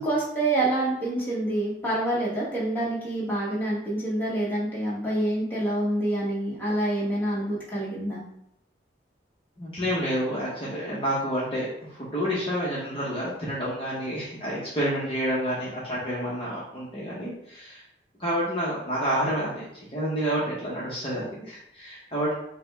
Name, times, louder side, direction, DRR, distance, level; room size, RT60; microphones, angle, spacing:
voice 1, 0.0-8.2, right 1 dB, 10° left, -7 dB, 1.2 m, -27 dB
voice 2, 9.6-17.8 18.2-22.3, equal, 30° left, -8 dB, 0.9 m, -29 dB
4.9 x 2.2 x 3.3 m, 0.77 s
head